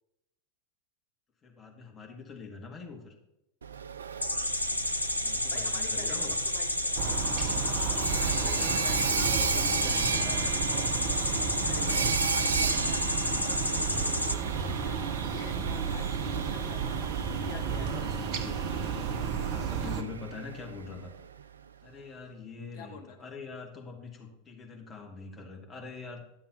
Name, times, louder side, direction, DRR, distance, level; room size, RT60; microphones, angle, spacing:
voice 1, 1.4-3.1 5.2-6.3 8.1-10.6 17.6-19.1 19.4-21.1 21.8-26.2, left 4 dB, 20° left, 1 dB, 2.1 m, -44 dB
Sawing, 3.6-21.4, right 6 dB, 70° right, 0.4 m, -36 dB
sound 1, 4.2-14.3, left 1 dB, 85° left, 0.6 m, -31 dB
voice 2, 5.5-7.2 7.6-9.8 11.6-18.0 22.7-23.2, left 5 dB, 50° left, 3 dB, 1.6 m, -47 dB
sound 2, 7.0-20.0, right 6 dB, 40° right, 1.0 m, -32 dB
11.5 x 6.9 x 4.1 m, 0.88 s
figure-of-eight pair, 90°, 0 cm